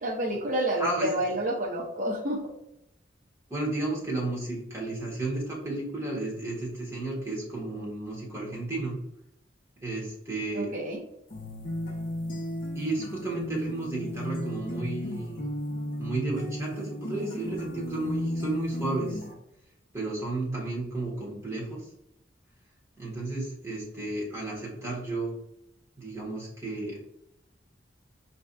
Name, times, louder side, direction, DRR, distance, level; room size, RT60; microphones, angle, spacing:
voice 1, 0.0-2.4 10.5-11.0, right 1 dB, 40° right, -2 dB, 0.6 m, -29 dB
voice 2, 3.5-8.9 9.8-10.7 12.7-15.4 16.0-19.2 19.9-21.8 23.0-25.3 26.0-27.0, right 2 dB, 15° right, -4 dB, 1.2 m, -32 dB
sound 1, 11.3-19.3, equal, 45° left, 0.6 m, -34 dB
4.5 x 2.7 x 2.2 m, 0.80 s
head